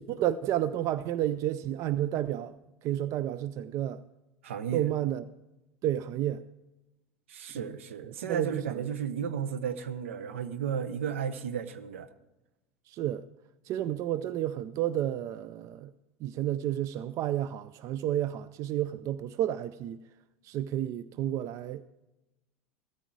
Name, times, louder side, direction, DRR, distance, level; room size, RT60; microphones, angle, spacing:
voice 1, 0.0-2.6 2.8-4.0 4.7-5.2 5.8-6.4 7.5-7.7 8.3-8.8 12.9-13.2 13.7-15.9 16.2-20.0 20.4-21.8, right 12 dB, 45° right, 0.5 m, -31 dB
voice 2, 4.4-4.9 7.3-12.1, right 7 dB, 70° right, 1.0 m, -34 dB
16.0 x 13.5 x 4.7 m
figure-of-eight pair, 75°, 7 cm